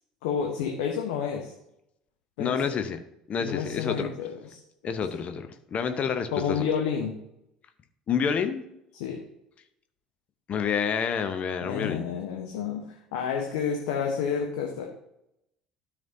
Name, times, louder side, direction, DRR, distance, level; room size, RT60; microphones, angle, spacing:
voice 1, 0.2-1.5 2.4-2.8 3.4-4.6 6.3-7.2 8.9-9.2 11.6-14.9, left 7 dB, 65° left, 2 dB, 0.9 m, -30 dB
voice 2, 2.4-3.0 3.3-4.1 4.8-6.7 8.1-8.6 10.5-12.0, left 6 dB, 40° left, 8 dB, 0.7 m, -28 dB
12.5 x 5.1 x 2.7 m, 0.83 s
figure-of-eight pair, 60°, 4 cm